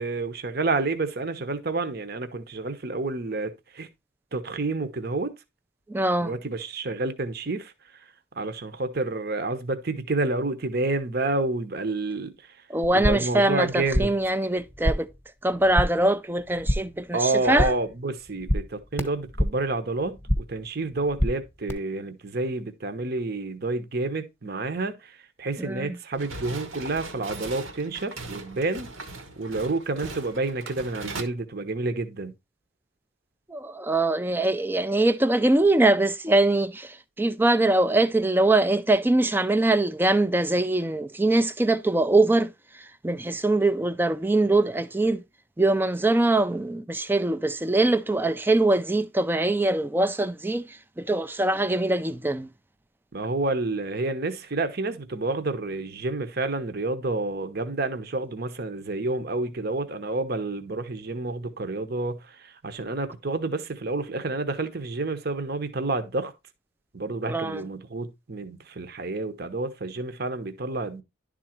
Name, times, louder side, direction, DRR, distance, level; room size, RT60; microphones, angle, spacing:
voice 1, 0.0-3.9 4.3-5.3 6.2-7.7 8.4-12.3 12.9-14.1 17.1-28.9 29.4-32.3 53.1-66.3 66.9-71.0, right 2 dB, 50° right, 0.9 m, -29 dB
voice 2, 5.9-6.3 12.7-15.1 15.4-17.7 25.6-26.0 33.5-42.5 42.7-45.2 45.6-52.5 67.2-67.6, right 2 dB, 10° right, 0.3 m, -23 dB
sound 1, 12.8-13.4 13.7-14.3 14.6-15.2 15.5-16.1 16.4-17.0 17.3-17.9 18.2-19.7 20.0-20.6 20.9-21.7, equal, 10° left, 1.0 m, -28 dB
sound 2, 26.1-31.2, right 3 dB, 85° right, 1.3 m, -39 dB
11.0 x 3.8 x 4.4 m
head